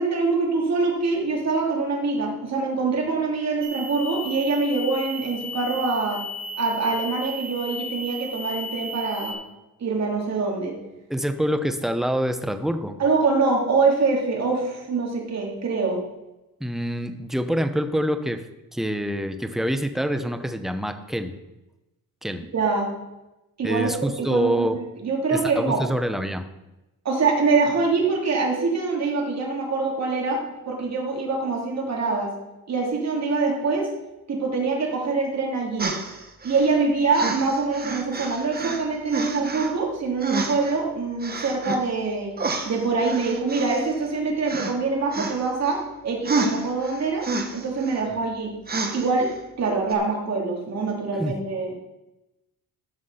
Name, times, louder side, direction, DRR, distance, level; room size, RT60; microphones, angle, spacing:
voice 1, 0.0-6.2 6.6-9.4 9.8-10.8 13.0-16.0 22.5-22.9 23.6-24.5 25.0-25.8 27.0-32.3 32.7-33.9 34.3-35.9 36.4-42.3 42.6-47.3 47.5-48.5 48.9-51.7, right 4 dB, 50° right, 0 dB, 3.0 m, -24 dB
sound 1, 3.6-9.3, left 1 dB, 70° right, 1.9 m, -35 dB
voice 2, 11.1-13.0 16.6-18.4 18.7-21.4 22.2-22.4 23.6-24.8 25.3-26.4 51.1-51.3, equal, ahead, 8 dB, 0.8 m, -26 dB
sound 2, 35.8-36.7 37.1-38.8 39.1-39.7 40.2-40.8 41.2-41.8 42.4-44.2 44.5-44.7 45.1-45.8 46.2-48.0 48.7-49.3 49.9-50.0, right 3 dB, 25° right, 1.3 m, -29 dB
13.0 x 5.9 x 5.8 m, 0.97 s
cardioid pair, 125°, 35 cm